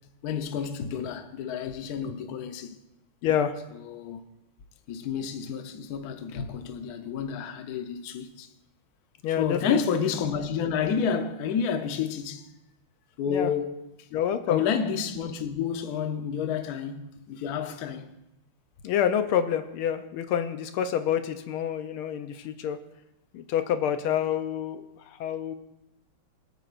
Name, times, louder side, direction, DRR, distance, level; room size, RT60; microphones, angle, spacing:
voice 1, 0.2-2.8 3.7-4.2 4.9-8.5 9.3-12.5 13.2-13.9 14.5-18.1, left 7 dB, 55° left, 1.1 m, -30 dB
voice 2, 3.2-3.5 9.2-9.8 13.3-13.5 14.1-14.6 18.8-22.8 23.3-25.5, left 9 dB, 80° left, 1.6 m, -27 dB
23.5 x 9.2 x 2.5 m
omnidirectional pair, 2.4 m